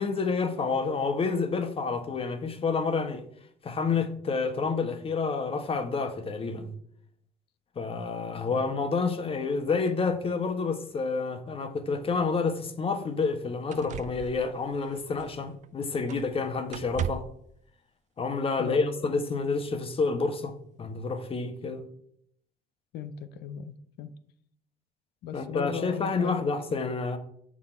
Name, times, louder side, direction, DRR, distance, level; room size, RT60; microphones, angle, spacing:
voice 1, 0.0-3.3 3.6-6.7 7.8-17.3 18.2-21.9 25.3-27.2, left 4 dB, 35° left, 1.1 m, -29 dB
sound 1, 12.4-12.5 13.2-13.3 13.7-15.7 16.1-16.4 16.7-17.5 18.6-18.7, right 9 dB, 45° right, 0.4 m, -38 dB
voice 2, 18.6-18.9 22.9-24.1 25.2-26.5, left 8 dB, 75° left, 0.7 m, -37 dB
7.3 x 6.3 x 4.4 m
cardioid pair, 110°, 17 cm